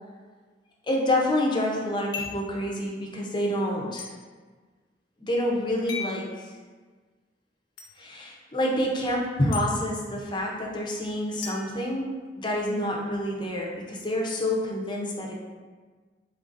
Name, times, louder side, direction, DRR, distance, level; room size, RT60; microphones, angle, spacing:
voice 1, 0.9-4.1 5.2-6.5 8.0-12.1 12.4-15.3, left 1 dB, 25° left, -2 dB, 0.6 m, -28 dB
sound 1, 2.1-2.5 4.0-4.1 5.9-6.2 7.8-7.9 9.5-9.7 11.4-12.5, left 5 dB, 85° left, 0.7 m, -37 dB
3.9 x 3.8 x 2.5 m, 1.4 s
head